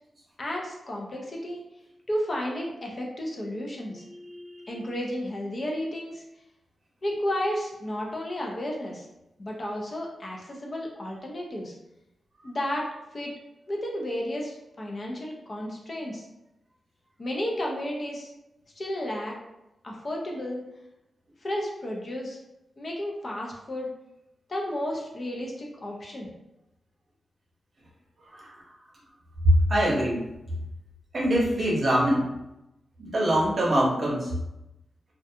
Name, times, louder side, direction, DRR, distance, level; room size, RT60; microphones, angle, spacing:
voice 1, 0.4-1.7 2.1-4.0 4.7-6.2 7.0-9.1 9.4-11.8 12.4-13.3 13.7-16.3 17.2-18.3 18.8-19.4 19.8-20.6 21.4-22.4 22.8-23.9 24.5-26.3, left 1 dB, 30° left, -1 dB, 0.4 m, -32 dB
voice 2, 3.9-4.9 12.4-12.5 28.2-28.7 29.4-30.3 31.1-32.3 33.0-34.3, equal, 40° right, -4 dB, 0.7 m, -24 dB
2.4 x 2.2 x 2.6 m, 0.90 s
wide cardioid pair, 165°, 0 cm